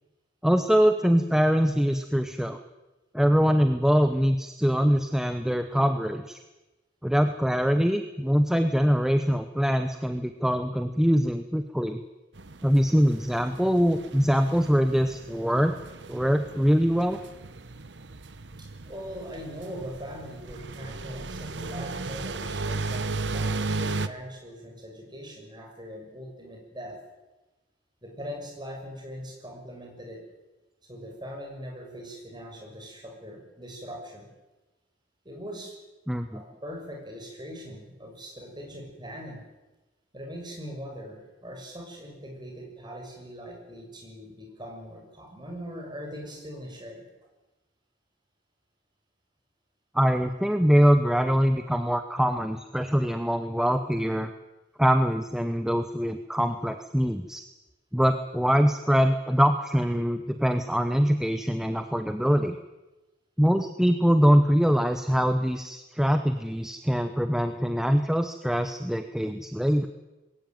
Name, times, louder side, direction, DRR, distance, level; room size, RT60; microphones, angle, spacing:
voice 1, 0.4-2.6 3.1-6.4 7.0-12.0 12.6-15.8 16.1-17.2 36.1-36.4 49.9-54.3 54.8-57.4 57.9-62.6 63.4-69.9, equal, 5° right, 8 dB, 0.9 m, -23 dB
sound 1, 12.3-24.1, right 3 dB, 65° right, 1.1 m, -35 dB
voice 2, 18.6-27.0 28.0-30.2 30.9-34.3 35.2-35.7 36.3-39.4 40.1-47.1, equal, 25° right, 1 dB, 6.2 m, -41 dB
21.0 x 17.0 x 9.3 m, 1.1 s
head